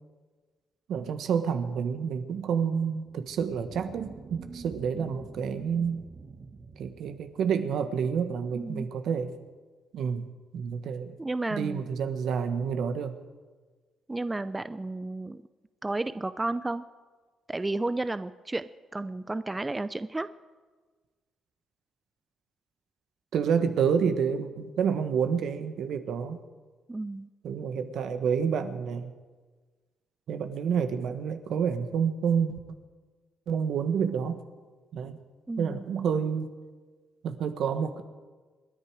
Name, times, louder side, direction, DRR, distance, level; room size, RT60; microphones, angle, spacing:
voice 1, 0.9-6.0 6.8-9.4 9.9-10.3 10.5-11.1 11.5-13.2 23.3-26.4 27.4-29.1 30.3-32.6 33.5-34.4 34.9-35.2 35.6-36.5 37.2-38.0, right 7 dB, 75° right, 8 dB, 1.4 m, -29 dB
sound 1, 3.0-8.0, right 4 dB, 40° right, 1.2 m, -46 dB
voice 2, 8.5-8.9 11.2-11.9 14.1-15.4 15.8-16.8 17.5-18.6 18.9-20.3 26.9-27.3 35.5-35.8, right 2 dB, 15° right, 13 dB, 0.5 m, -32 dB
27.0 x 10.5 x 4.9 m, 1.4 s
cardioid pair, 90°, 0 cm